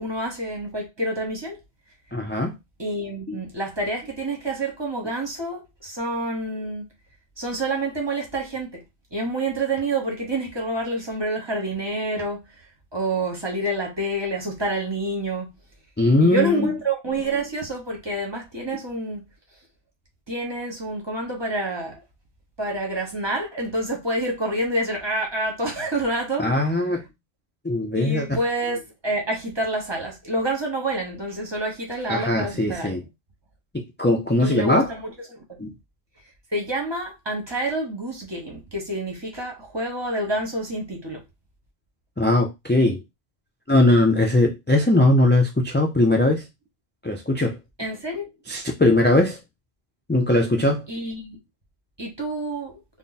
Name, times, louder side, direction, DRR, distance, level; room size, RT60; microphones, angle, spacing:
voice 1, 0.0-1.6 2.8-6.9 7.4-8.8 9.1-15.6 16.2-19.3 20.3-22.0 22.6-26.7 27.9-33.0 34.4-35.4 36.5-41.2 47.8-48.3 50.9-51.4 52.0-52.8, right 1 dB, 25° right, 1.1 m, -28 dB
voice 2, 2.1-2.6 3.3-3.4 16.0-16.7 26.4-27.1 27.6-28.3 32.1-33.0 33.7-34.9 35.6-35.7 42.2-43.0 43.7-46.4 47.0-47.6 48.5-49.4 50.1-50.8, left 2 dB, 15° left, 0.3 m, -20 dB
3.4 x 2.2 x 4.0 m
omnidirectional pair, 1.1 m